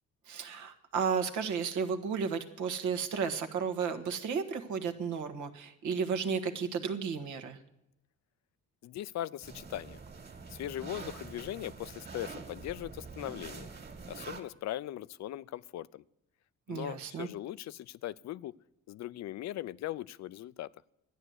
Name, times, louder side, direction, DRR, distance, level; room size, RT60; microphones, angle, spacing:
voice 1, 0.3-7.6 16.7-17.3, right 6 dB, 75° right, 7 dB, 1.4 m, -33 dB
voice 2, 8.8-10.0 10.5-13.7 14.1-16.0 16.7-18.5 18.9-20.7, left 13 dB, 65° left, 18 dB, 0.5 m, -39 dB
sound 1, 9.4-14.4, right 4 dB, 35° right, 2.1 m, -45 dB
12.0 x 9.6 x 7.9 m, 0.85 s
cardioid pair, 90°, 30 cm